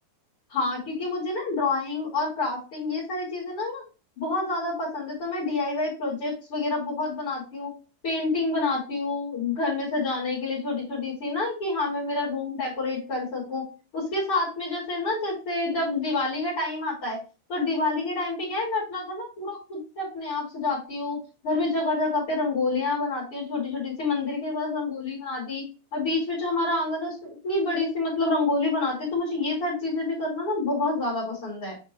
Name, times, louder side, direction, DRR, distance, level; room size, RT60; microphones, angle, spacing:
voice 1, 0.5-3.8 4.2-7.7 8.0-13.6 13.9-17.2 17.5-21.2 21.4-25.6 25.9-31.8, left 3 dB, 35° left, -9 dB, 3.3 m, -28 dB
8.8 x 4.2 x 3.1 m, 0.33 s
omnidirectional pair, 5.1 m